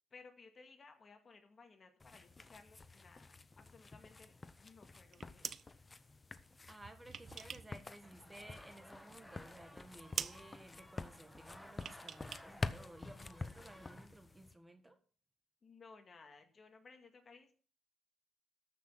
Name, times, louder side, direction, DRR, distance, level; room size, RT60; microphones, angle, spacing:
voice 1, 0.1-5.5 15.6-17.5, left 4 dB, 40° left, 2.1 m, -60 dB
sound 1, 2.0-14.5, left 3 dB, 25° left, 0.8 m, -49 dB
sound 2, 5.0-5.7 6.7-7.8 8.1-9.0 9.3-9.4 9.7-9.9 10.1-10.4 11.7-12.5 12.7-12.8, right 7 dB, 50° right, 0.6 m, -45 dB
voice 2, 6.7-15.0, right 1 dB, 15° right, 1.7 m, -56 dB
sound 3, 8.0-14.1, left 1 dB, 5° left, 1.5 m, -58 dB
13.5 x 6.3 x 5.8 m
cardioid pair, 90°, 0 cm